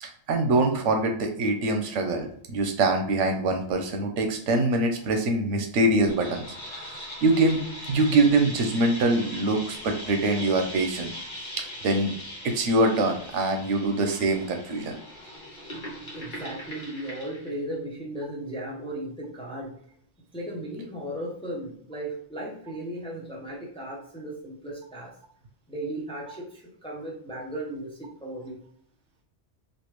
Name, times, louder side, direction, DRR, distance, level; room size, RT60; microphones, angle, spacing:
voice 1, 0.0-6.5 6.7-7.6 7.9-11.1 11.8-12.1 12.4-15.0, right 2 dB, 85° right, 5 dB, 1.0 m, -24 dB
sound 1, 6.0-17.5, equal, 45° left, 1.1 m, -40 dB
voice 2, 16.1-19.7 20.3-25.1 25.7-28.6, right 1 dB, 5° left, -3 dB, 0.6 m, -36 dB
3.3 x 2.5 x 3.0 m, 0.65 s
omnidirectional pair, 1.2 m